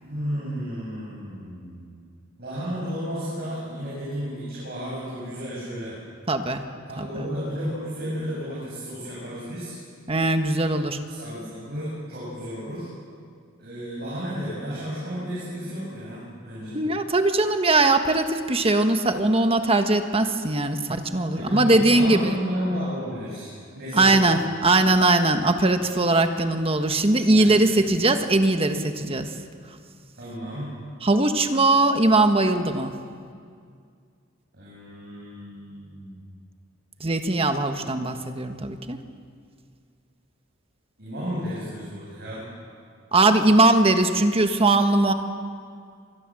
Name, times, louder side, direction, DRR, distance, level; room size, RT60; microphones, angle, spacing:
voice 1, 0.0-2.0 2.4-6.0 6.8-9.8 11.0-12.9 13.6-16.8 21.2-23.5 23.8-24.3 27.3-27.6 30.1-30.7 34.5-36.2 37.8-37.9 41.0-42.5, equal, 55° right, -7 dB, 7.7 m, -33 dB
voice 2, 6.3-6.6 7.0-7.3 10.1-11.0 16.7-22.3 23.9-29.3 31.0-32.9 37.0-39.0 43.1-45.1, right 2 dB, 30° right, 7 dB, 1.4 m, -20 dB
26.0 x 20.5 x 7.7 m, 2.2 s
head